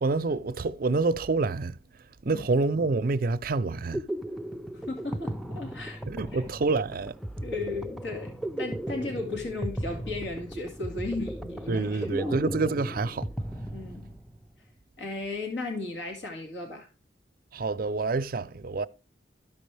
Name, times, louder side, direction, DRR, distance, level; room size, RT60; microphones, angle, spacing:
voice 1, 0.0-1.7 2.2-4.0 6.1-7.1 11.7-13.3 17.5-18.9, right 3 dB, 55° right, 0.5 m, -27 dB
sound 1, 3.6-14.4, right 1 dB, ahead, 0.4 m, -36 dB
voice 2, 4.9-6.0 6.3-6.4 7.4-12.4 13.7-14.1 15.0-16.9, left 3 dB, 80° left, 2.0 m, -35 dB
13.0 x 5.3 x 3.3 m
head